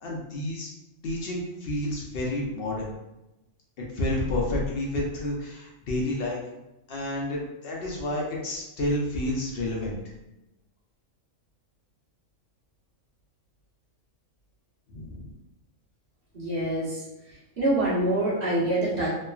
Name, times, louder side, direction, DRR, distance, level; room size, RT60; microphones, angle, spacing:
voice 1, 0.0-0.7 1.0-2.9 3.9-6.4 6.9-10.0 14.9-15.3, left 1 dB, 60° left, -3 dB, 0.7 m, -30 dB
voice 2, 16.3-17.0 17.6-19.1, right 1 dB, 50° right, -8 dB, 1.1 m, -25 dB
3.0 x 2.1 x 2.3 m, 0.96 s
omnidirectional pair, 1.4 m